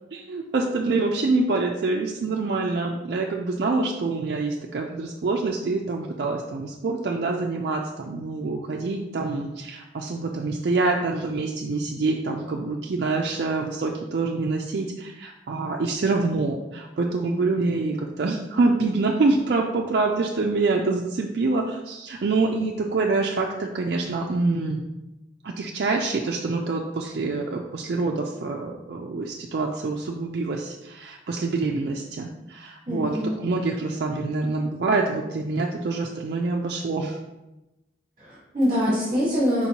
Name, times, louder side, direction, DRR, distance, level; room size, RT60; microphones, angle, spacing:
voice 1, 0.1-24.8 25.4-37.2, right 3 dB, 60° right, 0 dB, 0.4 m, -26 dB
voice 2, 32.9-33.3 38.2-39.7, equal, 25° right, -7 dB, 1.1 m, -24 dB
4.4 x 4.3 x 2.8 m, 0.99 s
head